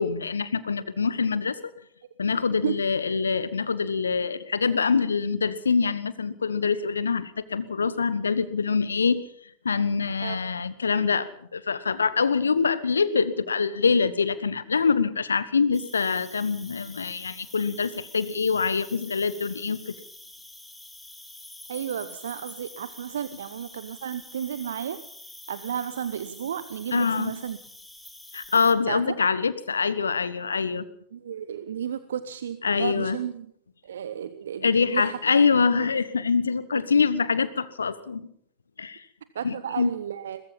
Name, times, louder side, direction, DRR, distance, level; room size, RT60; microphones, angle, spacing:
voice 1, 0.0-1.5 2.2-9.2 9.6-19.9 26.9-27.3 28.3-30.9 32.6-33.2 34.6-38.3 38.8-39.0 39.4-39.9, left 5 dB, 75° left, 15 dB, 1.4 m, -25 dB
Cricket, 15.7-28.7, left 2 dB, 5° left, 3.2 m, -46 dB
voice 2, 21.7-25.0 25.5-27.6 28.9-29.1 31.1-33.5 33.9-35.2 35.8-35.9 39.3-40.4, right 9 dB, 65° right, 13 dB, 1.0 m, -33 dB
22.5 x 20.5 x 5.7 m, 0.66 s
figure-of-eight pair, 90°, 0 cm